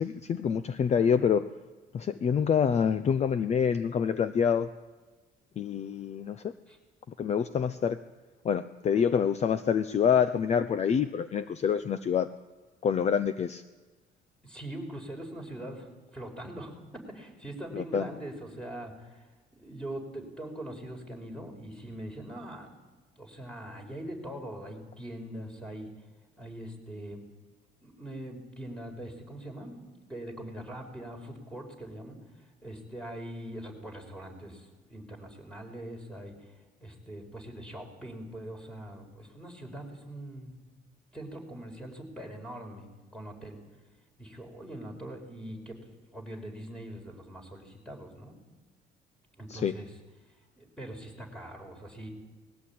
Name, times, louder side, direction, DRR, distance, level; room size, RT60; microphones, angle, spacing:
voice 1, 0.0-1.5 1.9-4.7 5.6-6.5 7.2-8.0 8.4-12.3 12.8-13.6 17.7-18.1 49.5-49.7, left 7 dB, 40° left, 12 dB, 0.7 m, -26 dB
voice 2, 14.4-19.2 19.5-22.7 23.2-25.9 26.4-27.2 27.8-29.8 30.1-32.2 32.6-36.3 36.8-40.5 41.1-42.9 43.1-43.6 44.2-45.8 46.1-48.3 49.4-49.9 50.6-52.1, right 1 dB, 5° left, 3 dB, 5.0 m, -42 dB
20.5 x 16.0 x 8.7 m, 1.3 s
cardioid pair, 110°, 17 cm